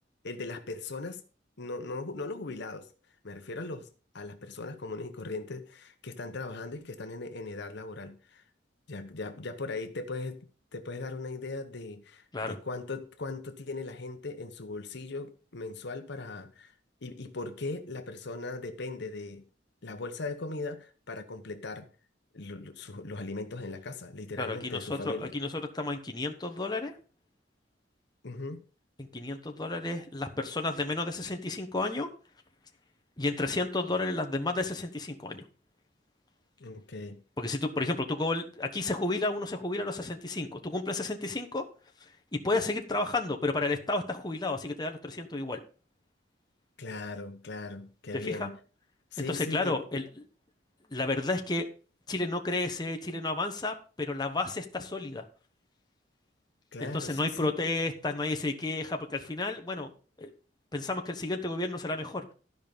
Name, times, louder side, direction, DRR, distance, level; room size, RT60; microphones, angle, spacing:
voice 1, 0.2-1.2 1.6-2.9 3.2-3.9 4.1-8.4 8.9-10.4 10.7-16.7 17.0-19.4 19.8-21.9 22.3-25.3 28.2-28.6 36.6-37.2 46.8-48.6 49.1-49.8 56.7-57.5, left 3 dB, 65° left, 1.0 m, -39 dB
voice 2, 24.4-26.9 29.0-32.1 33.2-35.4 37.4-41.6 42.0-45.6 48.2-48.5 49.2-50.2 50.9-51.7 52.1-55.2 56.8-59.9 60.2-60.3 60.7-62.2, left 2 dB, 25° left, 1.2 m, -32 dB
13.0 x 5.4 x 5.3 m
head